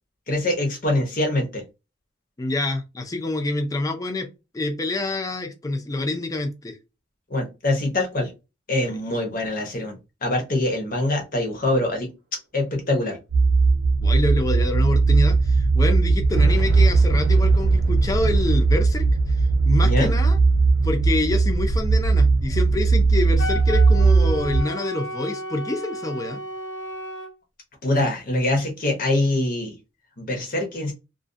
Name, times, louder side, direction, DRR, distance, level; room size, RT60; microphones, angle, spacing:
voice 1, 0.3-1.6 7.3-8.3 8.7-12.1 12.5-13.2 19.8-20.1 27.8-29.7 30.2-30.9, left 1 dB, 45° left, 0.8 m, -24 dB
voice 2, 2.4-4.3 4.5-6.8 8.9-9.0 14.0-20.4 20.8-26.4, left 2 dB, 15° left, 0.4 m, -27 dB
sound 1, 12.4-12.5 12.7-12.8 13.6-13.7 14.2-14.3 15.9-22.3 22.7-23.7, right 1 dB, 50° right, 0.7 m, -36 dB
sound 2, 13.3-24.6, right 3 dB, 85° right, 0.6 m, -18 dB
Wind instrument woodwind instrument, 23.4-27.3, equal, 70° left, 1.1 m, -33 dB
2.4 x 2.2 x 2.5 m
head